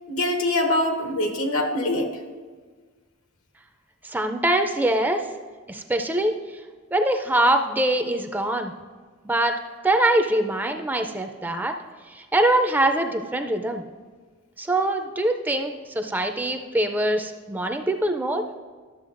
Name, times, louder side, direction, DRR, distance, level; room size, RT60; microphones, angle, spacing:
voice 1, 0.1-2.1, left 1 dB, 90° left, 3 dB, 1.0 m, -24 dB
voice 2, 4.1-5.3 5.7-6.3 6.9-8.7 9.2-9.5 9.8-11.7 12.1-13.8 14.6-18.4, right 1 dB, 10° right, 5 dB, 0.4 m, -23 dB
11.5 x 7.1 x 2.5 m, 1.5 s
head